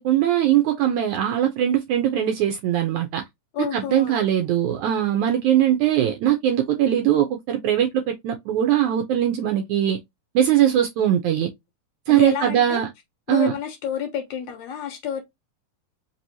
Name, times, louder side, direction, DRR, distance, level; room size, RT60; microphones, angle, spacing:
voice 1, 0.0-3.2 3.7-10.0 10.4-11.5 12.1-12.9 13.3-13.5, right 11 dB, 75° right, 1.8 m, -21 dB
voice 2, 3.5-4.3 12.1-12.8 13.3-15.2, left 9 dB, 70° left, 2.0 m, -29 dB
5.3 x 2.9 x 2.7 m
omnidirectional pair, 4.0 m